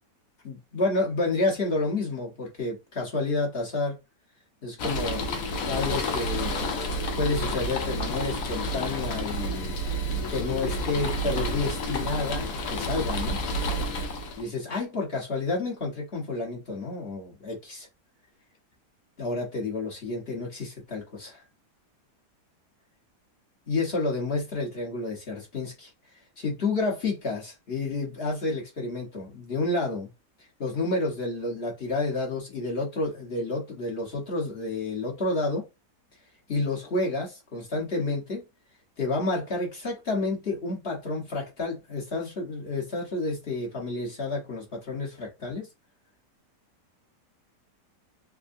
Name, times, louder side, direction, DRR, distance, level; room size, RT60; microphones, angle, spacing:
voice 1, 0.4-3.9 4.6-5.3 5.7-6.6 7.2-9.8 10.3-13.4 14.4-17.9 19.2-21.4 23.7-25.9 26.4-30.1 30.6-35.7 36.5-38.5 39.0-45.7, left 3 dB, 40° left, 1.1 m, -30 dB
sound 1, 4.8-14.4, equal, 70° left, 0.9 m, -30 dB
3.5 x 2.1 x 2.5 m
omnidirectional pair, 1.8 m